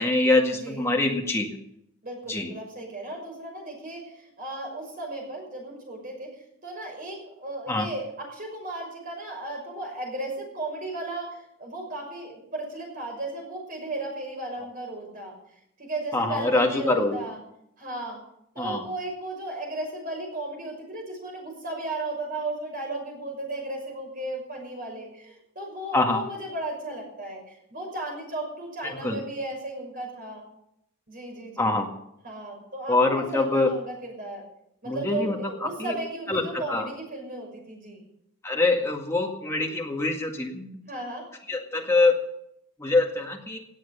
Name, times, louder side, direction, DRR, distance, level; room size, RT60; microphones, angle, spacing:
voice 1, 0.0-1.5 2.3-2.5 7.7-7.9 16.1-17.2 18.6-18.9 25.9-26.2 29.0-29.2 31.6-31.9 32.9-33.7 34.9-35.5 35.8-36.0 36.3-36.9 38.4-40.8 41.5-42.3 42.8-43.6, left 2 dB, 10° left, 0 dB, 1.9 m, -24 dB
voice 2, 0.6-0.9 2.0-15.3 15.8-17.4 17.8-18.2 18.5-30.5 31.1-31.7 32.2-34.5 34.8-38.0 40.9-41.3, right 2 dB, 40° right, 0 dB, 6.1 m, -35 dB
18.5 x 8.1 x 6.8 m, 0.77 s
head